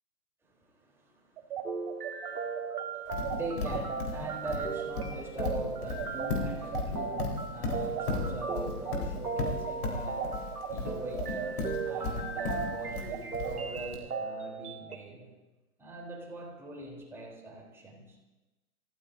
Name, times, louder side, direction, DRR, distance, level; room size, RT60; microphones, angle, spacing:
voice 1, 0.4-15.3 15.8-18.2, right 2 dB, 5° right, -4 dB, 3.9 m, -42 dB
sound 1, 1.4-10.8 11.1-14.2, right 10 dB, 35° right, 1.2 m, -39 dB
sound 2, 1.6-14.9, right 4 dB, 85° right, 2.0 m, -38 dB
Livestock farm animals working animals, 3.1-13.9, left 3 dB, 45° left, 4.5 m, -34 dB
28.5 x 15.5 x 2.8 m, 1.1 s
hypercardioid pair, 130°, 44 cm